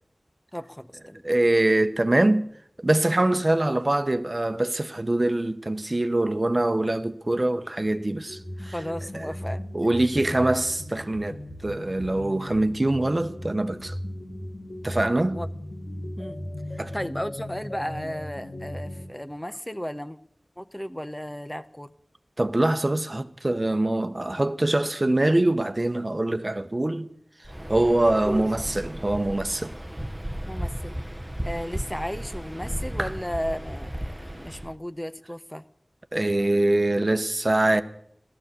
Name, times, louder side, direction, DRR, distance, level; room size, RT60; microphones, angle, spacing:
voice 1, 0.5-1.2 8.6-9.6 15.3-15.5 16.2-16.4 16.7-20.2 20.6-21.9 28.3-28.5 30.5-31.1 31.4-35.6, equal, 10° left, 0.8 m, -34 dB
voice 2, 1.2-2.5 2.8-8.4 8.7-8.8 9.1-9.3 9.7-14.0 14.8-15.4 16.8-16.9 22.4-27.1 27.7-29.7 33.0-33.1 36.1-37.8, right 1 dB, 40° right, 1.0 m, -24 dB
sound 1, 8.3-19.1, left 1 dB, 65° left, 2.8 m, -37 dB
Waves surf, 27.4-34.8, equal, 15° right, 1.0 m, -35 dB
15.5 x 13.5 x 6.8 m
wide cardioid pair, 40°, 0 cm